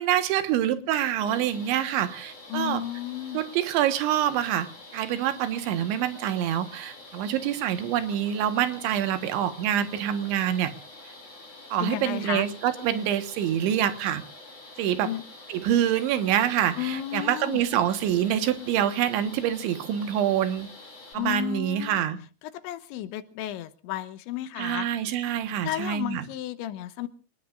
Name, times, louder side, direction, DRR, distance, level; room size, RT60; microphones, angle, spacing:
voice 1, 0.0-2.8 3.3-10.7 11.7-14.2 14.8-15.1 15.5-20.7 21.1-22.2 24.6-26.3, right 10 dB, 85° right, 3.8 m, -26 dB
sound 1, 1.3-21.1, left 2 dB, 55° left, 8.4 m, -47 dB
voice 2, 2.5-3.4 11.8-12.5 15.0-15.2 16.8-17.6 21.1-22.0 22.6-24.9 25.6-27.1, left 13 dB, 85° left, 3.4 m, -33 dB
27.0 x 20.0 x 2.5 m
omnidirectional pair, 5.1 m